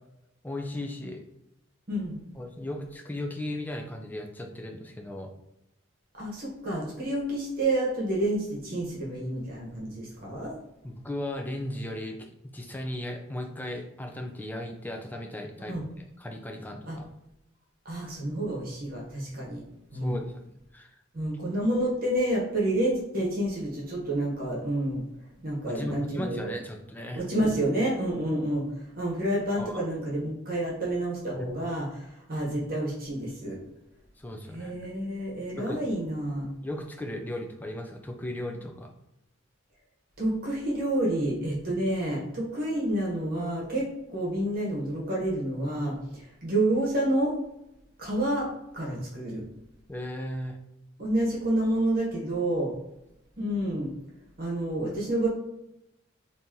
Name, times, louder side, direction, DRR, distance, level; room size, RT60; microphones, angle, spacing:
voice 1, 0.4-1.2 2.4-5.3 10.8-15.8 16.2-17.1 20.0-20.4 20.7-20.9 25.7-27.3 29.6-29.9 34.2-34.7 35.6-35.8 36.6-38.9 49.9-50.6, left 1 dB, 10° left, 3 dB, 0.4 m, -36 dB
voice 2, 6.1-10.5 15.6-15.8 16.9-17.0 17.8-19.6 19.9-20.2 21.1-25.0 25.4-26.5 27.1-28.6 28.9-33.6 34.5-36.5 40.2-47.3 48.0-48.5 48.7-49.4 51.0-52.7 53.4-53.9 54.4-55.3, right 1 dB, 45° right, -4 dB, 1.0 m, -29 dB
2.9 x 2.7 x 3.6 m, 0.86 s
head